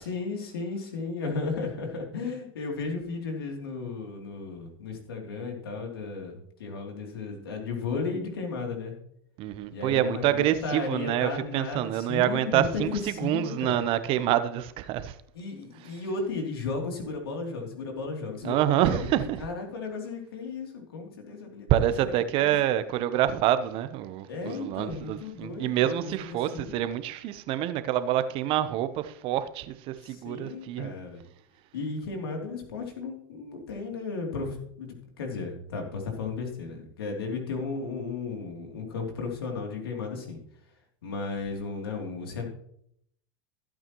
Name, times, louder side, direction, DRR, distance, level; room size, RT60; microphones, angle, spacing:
voice 1, 0.0-8.9 9.7-13.8 15.3-19.1 19.4-22.6 24.3-26.3 26.5-26.7 30.0-31.2 31.7-40.4 41.0-42.5, left 4 dB, 85° left, 3.1 m, -34 dB
voice 2, 9.4-15.2 18.4-19.4 21.7-30.9, right 12 dB, 50° right, 0.9 m, -27 dB
15.5 x 8.8 x 3.1 m
hypercardioid pair, 100°, 12 cm